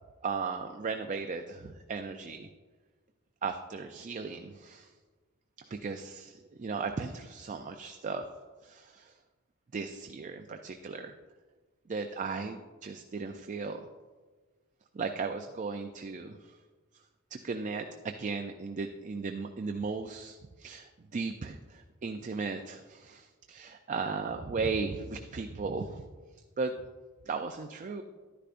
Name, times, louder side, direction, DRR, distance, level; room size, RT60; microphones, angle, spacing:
voice 1, 0.2-2.5 3.4-4.9 5.6-8.2 8.6-9.1 9.7-11.1 11.9-13.9 14.9-16.6 17.3-26.0 26.6-26.8 27.3-28.0, right 4 dB, 35° right, 6 dB, 0.4 m, -36 dB
11.5 x 10.0 x 2.5 m, 1.4 s
head